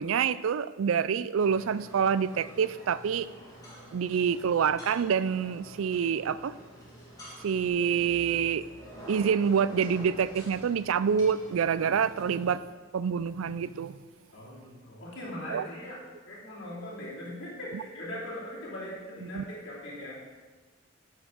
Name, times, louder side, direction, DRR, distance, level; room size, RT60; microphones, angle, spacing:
voice 1, 0.0-3.3 3.9-6.5 7.4-8.6 9.1-12.6 12.9-14.0 15.5-15.7 19.3-19.4, right 7 dB, 90° right, 16 dB, 0.4 m, -27 dB
sound 1, 1.4-12.6, equal, 20° left, 2.1 m, -47 dB
voice 2, 14.3-16.0 16.3-20.2, left 1 dB, 60° left, -7 dB, 3.1 m, -40 dB
10.0 x 5.6 x 6.2 m, 1.4 s
head